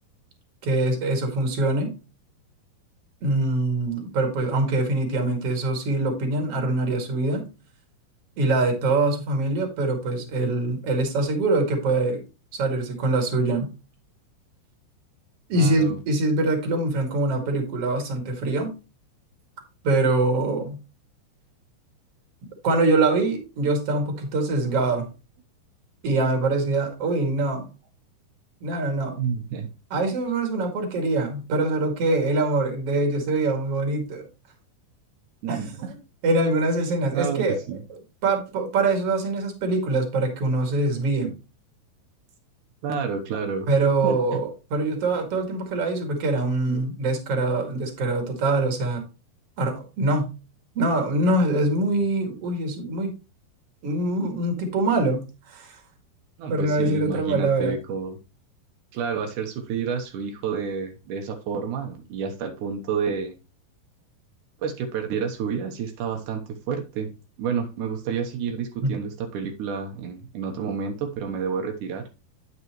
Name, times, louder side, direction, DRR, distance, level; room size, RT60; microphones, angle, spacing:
voice 1, 0.6-1.9 3.2-7.4 8.4-12.2 12.5-13.7 15.5-18.7 19.8-20.8 22.6-25.1 26.0-27.7 28.6-29.2 29.9-34.3 35.5-35.9 36.2-37.6 38.2-41.3 43.7-49.0 49.6-50.3 50.8-53.1 53.8-55.8 56.5-57.7 68.8-69.0, right 2 dB, 45° right, 4 dB, 2.4 m, -24 dB
voice 2, 15.5-16.0 29.2-29.7 35.4-35.9 37.1-37.8 42.8-43.7 44.0-44.2 46.7-46.9 56.4-58.2 58.9-63.3 64.6-67.1 67.4-72.0, right 6 dB, 85° right, 3 dB, 1.8 m, -29 dB
9.5 x 7.0 x 3.0 m, 0.29 s
omnidirectional pair, 5.0 m